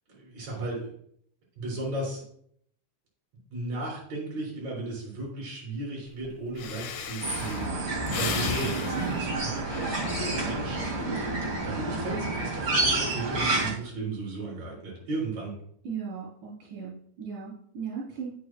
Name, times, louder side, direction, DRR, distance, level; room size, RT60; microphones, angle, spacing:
voice 1, 0.1-0.9 1.6-2.2 3.5-7.7 8.1-11.4 11.6-15.5, right 2 dB, 60° right, -4 dB, 5.2 m, -35 dB
Breathing, 6.2-6.3 6.6-10.8 11.3-11.6, left 7 dB, 75° left, 2.3 m, -36 dB
sound 1, 7.2-13.7, right 2 dB, 45° right, 3.1 m, -29 dB
voice 2, 15.8-18.3, right 6 dB, 80° right, -6 dB, 5.2 m, -37 dB
12.5 x 9.6 x 2.4 m, 0.67 s
omnidirectional pair, 3.6 m